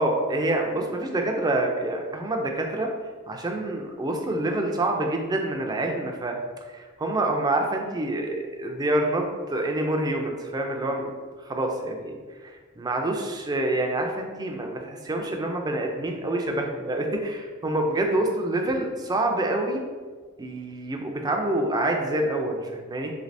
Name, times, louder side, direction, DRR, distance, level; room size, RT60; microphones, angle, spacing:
voice 1, 0.0-2.9 3.3-6.4 6.7-11.1 11.4-12.2 12.8-19.8 20.4-23.1, right 1 dB, 20° right, 2 dB, 0.4 m, -27 dB
3.2 x 3.2 x 2.6 m, 1.5 s
head